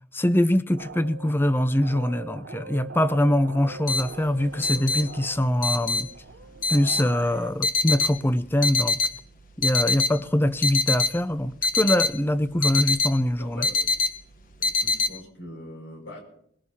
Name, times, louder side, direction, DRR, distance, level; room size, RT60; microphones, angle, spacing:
voice 1, 0.1-6.1 6.7-9.0 9.6-13.7, left 1 dB, 10° left, 0.5 m, -23 dB
sound 1, 0.8-7.5, right 3 dB, 65° right, 0.8 m, -41 dB
sound 2, 3.9-15.1, left 4 dB, 45° left, 1.1 m, -25 dB
voice 2, 4.5-4.9 6.9-7.1 10.1-10.3 13.3-13.9 14.6-16.2, equal, 75° left, 6.0 m, -42 dB
21.5 x 20.0 x 2.9 m
head